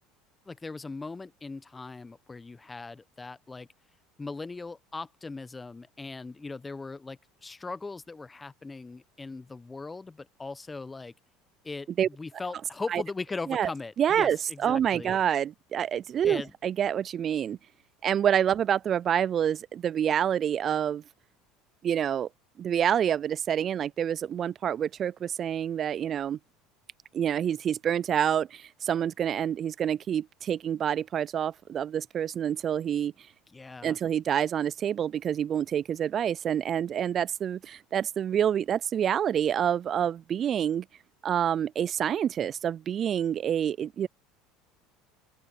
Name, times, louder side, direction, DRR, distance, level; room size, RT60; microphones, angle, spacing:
voice 1, 0.5-3.7 4.2-11.1 11.6-15.2 16.2-16.5 33.5-34.0, left 3 dB, 20° left, 1.2 m, -39 dB
voice 2, 14.0-17.6 18.0-21.0 21.8-22.3 22.6-26.4 27.1-33.1 33.8-40.8 41.2-44.1, right 9 dB, 40° right, 0.4 m, -27 dB
open air
hypercardioid pair, 75°, 0 cm